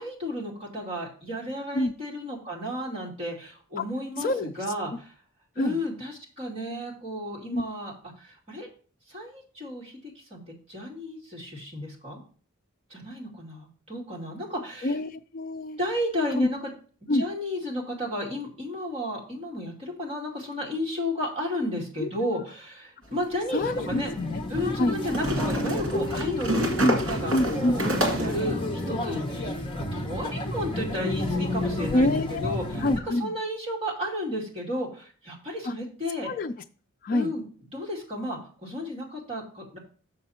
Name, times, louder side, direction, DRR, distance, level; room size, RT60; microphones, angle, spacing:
voice 1, 0.0-5.1 5.6-8.7 9.1-10.4 10.7-12.2 12.9-14.9 15.8-16.6 17.1-24.1 24.5-29.6 29.9-32.8 33.2-36.3 37.1-37.4 37.7-39.8, left 1 dB, 30° right, -3 dB, 2.3 m, -33 dB
voice 2, 4.2-4.5 5.6-5.8 7.5-7.6 14.8-15.8 16.4-16.5 17.1-17.2 22.0-22.4 23.5-24.4 24.8-25.0 26.8-27.0 27.3-27.7 31.9-33.3 35.6-35.7 36.2-36.5 37.0-37.3, left 1 dB, 40° left, 5 dB, 0.4 m, -26 dB
sound 1, 23.1-23.2 25.1-28.4, equal, 65° right, 2.1 m, -28 dB
sound 2, 23.6-33.0, left 1 dB, 25° left, 1.0 m, -31 dB
6.7 x 6.6 x 4.2 m, 0.41 s
head